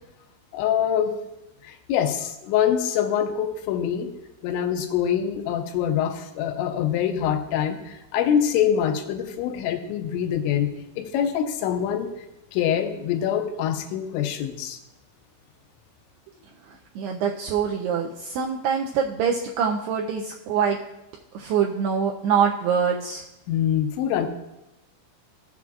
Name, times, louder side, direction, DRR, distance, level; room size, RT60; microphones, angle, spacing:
voice 1, 0.5-1.2 1.6-4.1 4.4-12.1 12.5-14.8 23.5-24.3, left 9 dB, 90° left, 6 dB, 3.0 m, -25 dB
voice 2, 17.0-20.8 21.3-23.2, right 7 dB, 90° right, 1 dB, 2.3 m, -24 dB
15.0 x 7.5 x 2.4 m, 0.92 s
omnidirectional pair, 5.3 m